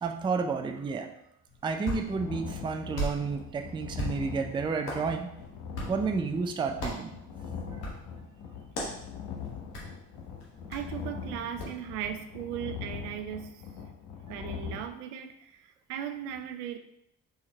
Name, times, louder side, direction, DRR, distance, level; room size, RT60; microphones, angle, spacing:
voice 1, 0.0-1.1 1.6-5.3 5.9-7.1, right 5 dB, 10° right, 5 dB, 0.4 m, -31 dB
Hands, 1.5-11.8, equal, 80° left, 1.3 m, -40 dB
sound 1, 2.0-14.8, left 6 dB, 60° left, 1.0 m, -41 dB
voice 2, 10.7-13.6 14.3-16.8, right 9 dB, 75° right, 8 dB, 0.6 m, -37 dB
4.3 x 3.7 x 3.1 m, 0.78 s
figure-of-eight pair, 50°, 47 cm